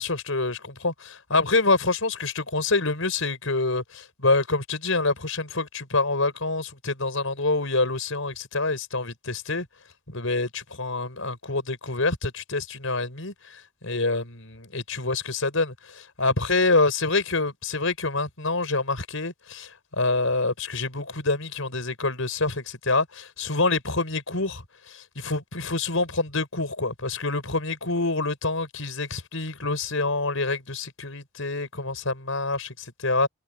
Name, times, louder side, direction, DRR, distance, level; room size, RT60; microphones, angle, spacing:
voice 1, 0.0-9.7 10.1-19.7 20.0-33.3, left 3 dB, 75° left, 4.9 m, -26 dB
head